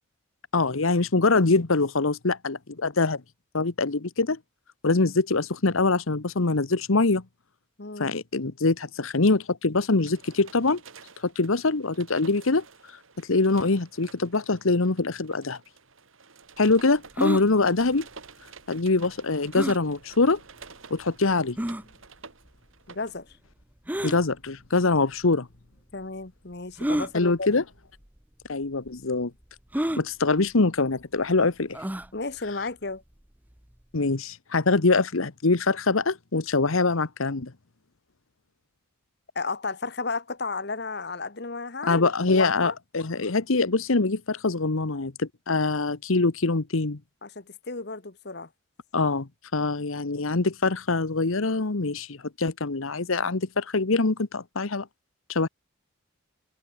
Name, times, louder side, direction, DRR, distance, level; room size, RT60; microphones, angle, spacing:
voice 1, 0.5-3.2 3.5-4.4 4.8-7.2 8.0-10.8 11.2-12.6 13.2-15.6 16.6-18.1 18.7-20.4 20.9-21.6 24.0-25.5 27.1-27.6 28.5-29.3 30.0-31.8 33.9-37.5 41.8-47.0 48.9-54.9 55.3-55.5, left 3 dB, 75° left, 1.1 m, -24 dB
voice 2, 7.8-8.1 17.4-17.6 22.9-23.4 25.9-27.5 32.1-33.0 39.3-42.8 47.2-48.5, left 3 dB, 50° left, 1.3 m, -33 dB
sound 1, 9.8-23.1, right 5 dB, 70° right, 2.9 m, -50 dB
sound 2, 17.1-17.4 19.5-19.8 20.6-20.7 21.6-21.8 23.9-24.2 25.2-25.3 26.8-27.1 28.0-28.2 28.4-28.5 29.7-30.0 31.7-32.1, equal, 10° right, 0.9 m, -28 dB
open air
head